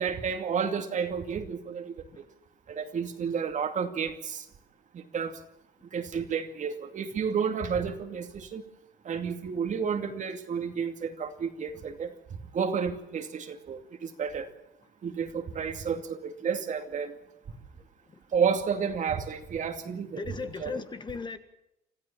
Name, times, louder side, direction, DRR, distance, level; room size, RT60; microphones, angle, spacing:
voice 1, 0.0-1.9 2.7-4.4 4.9-5.3 5.9-8.6 9.0-12.1 12.5-14.5 15.0-17.2 18.3-20.8, right 6 dB, 45° right, 2.5 m, -31 dB
voice 2, 20.2-21.4, left 4 dB, 25° left, 1.6 m, -37 dB
26.0 x 14.5 x 7.2 m
cardioid pair, 110°, 17 cm